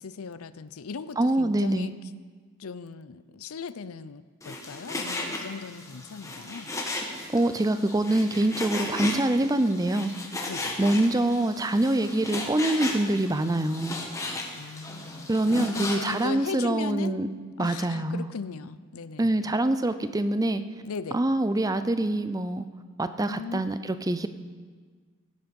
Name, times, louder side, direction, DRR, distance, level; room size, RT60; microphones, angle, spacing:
voice 1, 0.0-1.9 2.6-6.7 10.5-10.8 14.5-17.2 17.6-19.5 20.8-21.2 23.2-23.6, left 5 dB, 75° left, 15 dB, 0.6 m, -38 dB
voice 2, 1.2-1.9 7.3-10.1 10.8-14.0 15.3-17.3 17.6-18.3 19.2-20.6 21.1-22.7 23.0-24.3, right 1 dB, 15° right, 11 dB, 0.5 m, -25 dB
Frying (food), 4.4-16.3, left 2 dB, 15° left, 1.3 m, -35 dB
17.5 x 10.5 x 5.3 m, 1.5 s
head